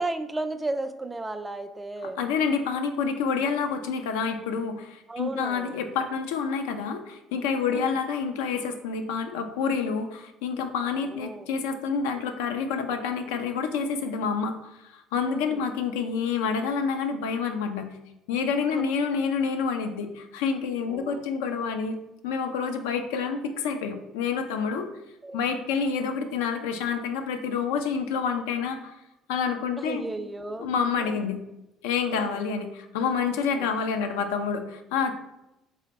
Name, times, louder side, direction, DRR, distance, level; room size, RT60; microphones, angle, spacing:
voice 1, 0.0-2.2 5.1-5.8 7.7-8.0 10.9-11.5 15.3-15.7 18.7-18.8 20.9-21.3 25.2-25.5 29.8-30.7 31.0-31.3 32.1-32.4 33.5-33.7, right 2 dB, 20° right, 9 dB, 0.3 m, -34 dB
voice 2, 2.2-17.9 18.3-22.0 22.2-24.9 25.3-29.0 29.3-30.0 30.6-31.4 31.8-35.1, left 6 dB, 80° left, 6 dB, 0.3 m, -28 dB
3.4 x 2.0 x 3.9 m, 0.90 s
hypercardioid pair, 65°, 0 cm